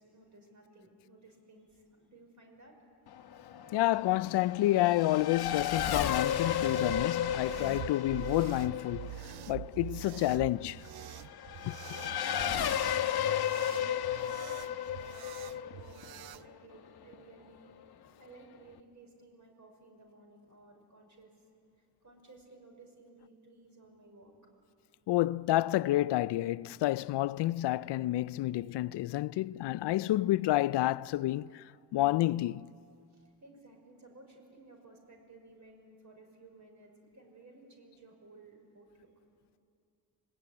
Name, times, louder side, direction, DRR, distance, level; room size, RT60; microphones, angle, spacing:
voice 1, 0.0-2.7 3.4-3.6 11.9-17.7 18.2-21.4 21.8-24.3 33.1-39.1, right 2 dB, 45° right, 5.9 m, -57 dB
Race car auto racing / Accelerating revving vroom, 3.1-17.1, left 10 dB, 70° left, 1.1 m, -34 dB
voice 2, 3.7-9.2 9.5-10.9 11.6-11.8 25.1-32.7, left 16 dB, 85° left, 0.5 m, -29 dB
sound 1, 6.3-16.4, right 14 dB, 65° right, 0.6 m, -45 dB
25.5 x 20.0 x 9.7 m
cardioid pair, 90°, 40 cm